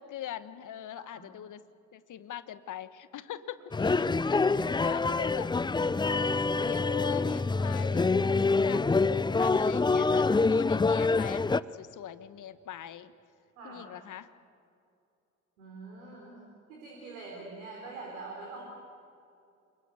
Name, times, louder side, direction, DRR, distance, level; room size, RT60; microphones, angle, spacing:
voice 1, 0.0-1.6 1.9-5.5 6.5-13.1 13.6-14.3, left 11 dB, 50° left, 14 dB, 1.3 m, -42 dB
sound 1, 3.7-11.6, left 3 dB, 10° left, 0.5 m, -26 dB
voice 2, 13.6-13.9 15.6-18.6, right 3 dB, 80° right, -2 dB, 4.3 m, -44 dB
27.5 x 22.5 x 8.2 m, 2.5 s
figure-of-eight pair, 45°, 40 cm